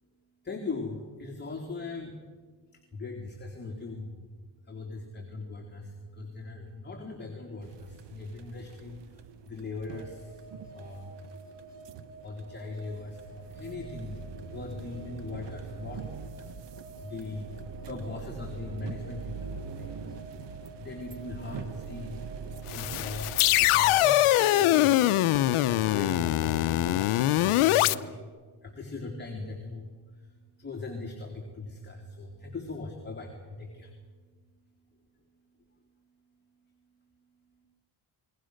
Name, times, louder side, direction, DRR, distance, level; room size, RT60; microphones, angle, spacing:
voice 1, 0.4-2.1 2.9-4.2 4.7-10.4 10.7-11.1 12.2-16.0 16.4-16.5 17.0-17.5 17.9-19.9 20.8-23.3 23.6-25.0 25.7-28.2 28.6-33.9, left 3 dB, 20° left, 0 dB, 3.5 m, -40 dB
sound 1, 7.6-24.0, right 6 dB, 55° right, 1.4 m, -43 dB
sound 2, 9.9-28.2, right 3 dB, 40° right, 6.1 m, -50 dB
sound 3, 22.7-27.9, left 15 dB, 90° left, 0.8 m, -23 dB
27.5 x 21.5 x 6.5 m, 1.5 s
cardioid pair, 105°, 49 cm